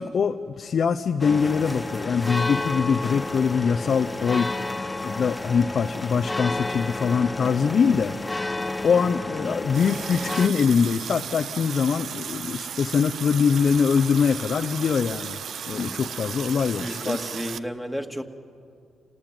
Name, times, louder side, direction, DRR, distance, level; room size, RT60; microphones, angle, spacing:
voice 1, 0.0-4.6 5.0-8.4 8.8-15.4 15.7-17.2, left 6 dB, 60° left, 6 dB, 0.8 m, -23 dB
sound 1, 1.2-10.5, left 2 dB, 20° left, 1.2 m, -31 dB
Water tap faucet, 9.7-17.6, right 8 dB, 70° right, 0.6 m, -35 dB
voice 2, 15.7-16.0 16.7-18.2, equal, 5° right, 4 dB, 2.3 m, -32 dB
27.5 x 17.5 x 9.2 m, 2.4 s
supercardioid pair, 50°, 0 cm